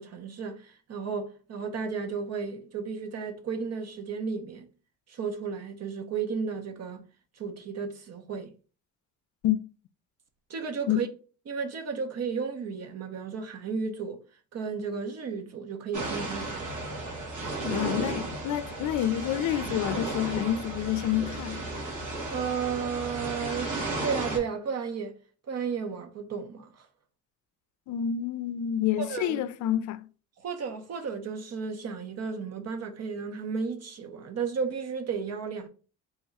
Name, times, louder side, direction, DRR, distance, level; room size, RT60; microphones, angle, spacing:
voice 1, 0.0-4.7 5.1-7.1 7.4-8.5 10.5-11.1 11.5-14.2 14.5-16.8 22.3-23.7 24.0-25.1 25.5-26.9 29.0-29.4 30.4-35.7, right 5 dB, 55° right, 0.8 m, -33 dB
sound 1, 15.9-24.4, right 2 dB, 80° right, 1.7 m, -34 dB
voice 2, 17.6-21.6 27.9-30.1, left 11 dB, 70° left, 0.4 m, -28 dB
3.4 x 2.3 x 4.0 m
cardioid pair, 90°, 30 cm